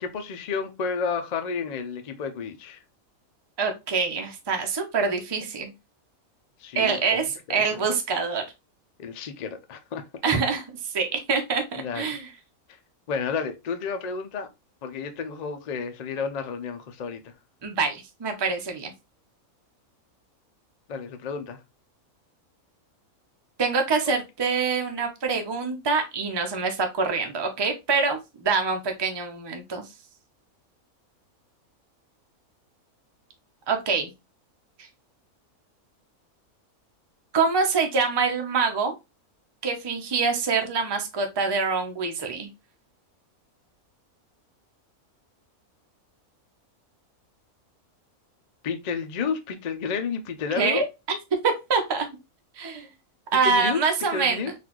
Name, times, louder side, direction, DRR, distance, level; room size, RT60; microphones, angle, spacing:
voice 1, 0.0-2.8 6.6-7.8 9.0-10.0 11.8-12.2 13.1-14.5 14.8-17.2 20.9-21.6 24.1-24.2 48.6-50.8 53.4-53.8 54.1-54.5, left 5 dB, 80° left, 0.3 m, -31 dB
voice 2, 3.6-5.7 6.8-8.4 10.2-12.3 17.6-18.9 23.6-29.8 33.7-34.1 37.3-38.9 39.6-42.5 50.6-51.2 51.4-52.1 52.6-52.9 53.3-54.5, right 4 dB, 30° right, 0.4 m, -25 dB
4.1 x 2.6 x 2.9 m
omnidirectional pair, 1.5 m